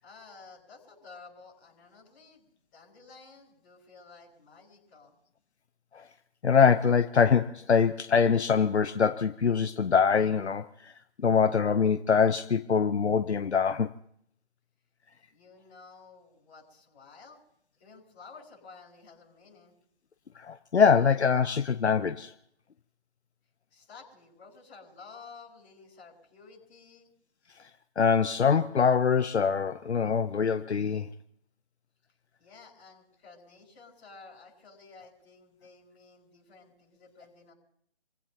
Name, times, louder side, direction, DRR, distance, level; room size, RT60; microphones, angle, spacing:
voice 1, 0.0-5.2 15.3-17.4 17.8-19.7 23.7-27.1 32.4-37.5, left 4 dB, 15° left, 7.6 m, -52 dB
voice 2, 6.4-10.9 11.2-13.9 20.3-22.3 28.0-31.1, left 6 dB, 75° left, 0.9 m, -24 dB
29.5 x 16.5 x 2.9 m
hypercardioid pair, 165°, 33 cm